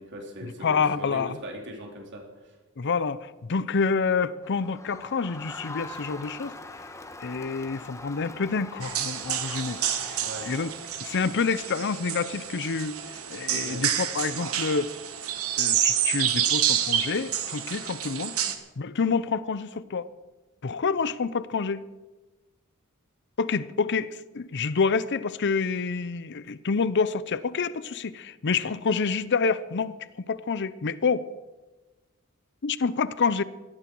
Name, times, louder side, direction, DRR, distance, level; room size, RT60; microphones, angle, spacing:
voice 1, 0.0-2.6 10.2-10.5 13.5-13.8 18.4-18.5, right 1 dB, 55° right, 1 dB, 3.3 m, -40 dB
voice 2, 0.6-1.4 2.8-6.6 7.2-10.2 10.5-10.7 11.0-13.0 13.3-14.9 15.6-18.4 18.8-20.1 20.6-21.8 23.4-29.9 30.3-31.3 32.6-33.4, left 5 dB, 55° left, 16 dB, 0.6 m, -27 dB
Crowd, 4.4-11.3, left 2 dB, 15° left, 1.2 m, -43 dB
sound 1, 8.8-18.5, right 10 dB, 70° right, 1.4 m, -28 dB
18.5 x 13.5 x 4.6 m, 1.2 s
head